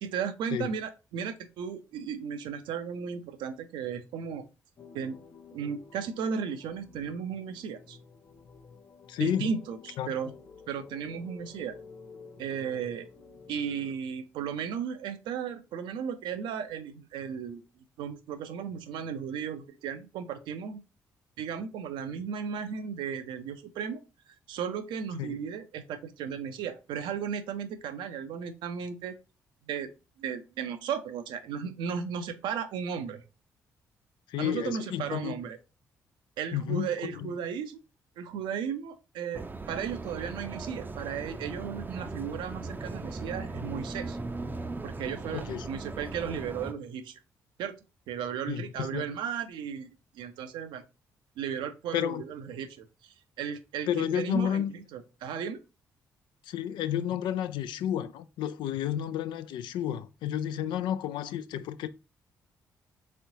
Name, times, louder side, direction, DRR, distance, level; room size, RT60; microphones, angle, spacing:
voice 1, 0.0-4.5 4.9-5.2 5.5-8.0 9.2-10.3 10.7-11.8 12.4-13.1 13.5-17.6 18.0-20.8 21.4-24.0 24.3-29.1 29.7-29.9 30.2-33.2 34.4-35.6 36.4-37.8 38.2-44.2 44.8-47.2 47.6-47.8 48.1-49.9 50.1-50.8 51.4-55.6, right 7 dB, 70° right, 0.6 m, -35 dB
sound 1, 4.8-13.9, left 5 dB, 40° left, 0.7 m, -51 dB
voice 2, 9.1-9.6 10.0-10.2 25.2-25.4 34.3-35.3 36.5-37.3 45.3-45.7 48.5-49.2 51.9-52.2 53.9-54.7 56.4-61.9, left 10 dB, 65° left, 0.4 m, -31 dB
sound 2, 39.3-46.7, right 3 dB, 20° right, 0.6 m, -38 dB
4.2 x 3.6 x 2.7 m
hypercardioid pair, 40°, 9 cm